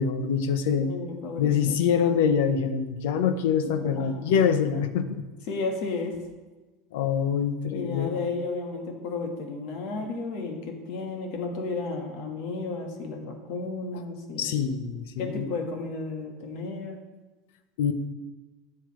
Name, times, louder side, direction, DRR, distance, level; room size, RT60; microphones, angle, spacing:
voice 1, 0.0-0.9 1.4-5.2 6.9-8.2 14.4-15.5 17.8-17.9, left 7 dB, 80° left, 9 dB, 0.8 m, -25 dB
voice 2, 0.8-1.8 3.6-4.5 5.5-6.2 7.7-14.6 15.2-17.0, left 3 dB, 50° left, 3 dB, 1.4 m, -33 dB
14.0 x 6.7 x 3.2 m, 1.2 s
cardioid pair, 180°, 0 cm